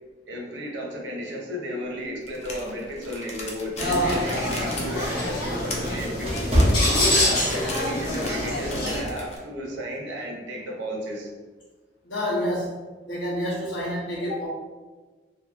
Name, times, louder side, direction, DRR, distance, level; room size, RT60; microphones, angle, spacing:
voice 1, 0.3-6.5 7.2-11.3, equal, 90° right, -1 dB, 0.7 m, -34 dB
sound 1, 2.3-9.4, left 2 dB, 35° left, 0.5 m, -38 dB
voice 2, 3.8-4.2 12.0-12.8 13.1-14.5, equal, 80° left, -7 dB, 0.8 m, -27 dB
sound 2, 3.8-9.0, left 1 dB, 65° left, 1.2 m, -26 dB
sound 3, 5.3-7.7 8.1-8.4 9.0-9.3, equal, 35° right, 0.6 m, -25 dB
2.7 x 2.7 x 2.4 m, 1.3 s
head